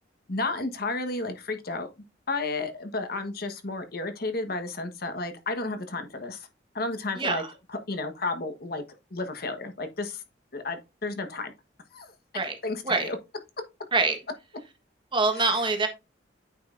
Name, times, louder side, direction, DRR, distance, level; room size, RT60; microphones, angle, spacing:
voice 1, 0.3-1.9 2.3-6.5 6.7-7.4 7.7-8.8 9.1-10.2 10.5-11.5 11.9-12.1 12.6-13.2 15.4-15.5, left 3 dB, 55° left, 1.3 m, -32 dB
voice 2, 7.2-7.5 12.3-12.6 12.8-13.1 13.9-14.2 15.1-15.9, right 3 dB, 25° right, 1.4 m, -24 dB
9.0 x 5.2 x 2.6 m
head